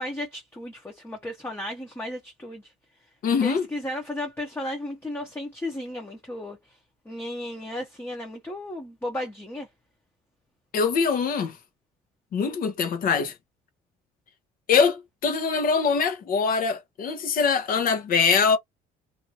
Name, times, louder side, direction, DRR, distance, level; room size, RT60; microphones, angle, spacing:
voice 1, 0.0-2.7 3.4-6.6 7.1-9.7, left 1 dB, 10° left, 0.9 m, -34 dB
voice 2, 3.2-3.7 10.7-11.5 12.3-13.3 14.7-18.6, left 5 dB, 60° left, 0.9 m, -23 dB
2.7 x 2.6 x 2.8 m
cardioid pair, 110°, 17 cm